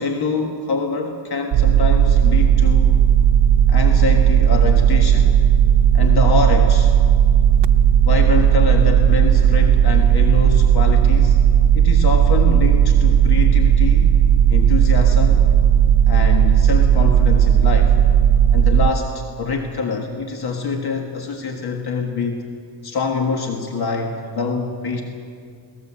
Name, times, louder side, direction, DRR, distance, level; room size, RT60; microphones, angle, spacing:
voice 1, 0.0-3.0 3.7-5.3 5.9-7.0 8.0-11.4 11.7-14.1 14.5-15.4 16.1-18.0 18.5-22.4 22.8-25.0, left 4 dB, 65° left, 3 dB, 1.7 m, -25 dB
sound 1, 1.5-18.9, right 9 dB, 90° right, 0.7 m, -14 dB
22.5 x 19.0 x 7.5 m, 2.3 s
wide cardioid pair, 120°, 41 cm